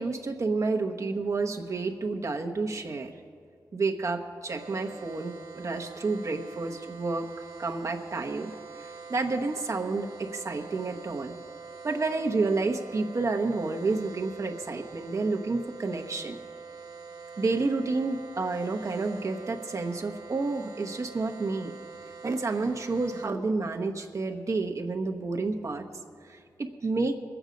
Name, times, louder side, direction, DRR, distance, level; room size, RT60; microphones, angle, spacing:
voice 1, 0.0-3.1 3.7-7.3 7.6-8.5 8.8-11.3 11.8-16.4 17.4-21.7 22.2-25.8 26.2-27.2, right 3 dB, 45° right, 4 dB, 1.1 m, -30 dB
sound 1, 4.5-23.3, right 5 dB, 80° right, 1.3 m, -45 dB
21.0 x 8.0 x 5.2 m, 2.2 s
wide cardioid pair, 90°, 7 cm